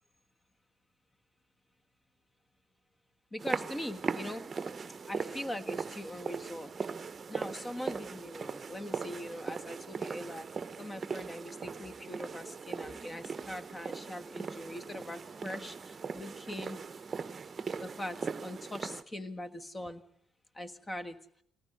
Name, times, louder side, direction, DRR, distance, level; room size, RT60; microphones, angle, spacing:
voice 1, 3.3-4.7 5.1-6.9 7.3-16.8 17.8-20.0 20.5-21.2, left 1 dB, 20° left, 8 dB, 1.5 m, -42 dB
sound 1, 3.4-19.0, right 5 dB, 35° right, 0.8 m, -39 dB
21.5 x 18.5 x 6.8 m, 0.70 s
hypercardioid pair, 60°, 0 cm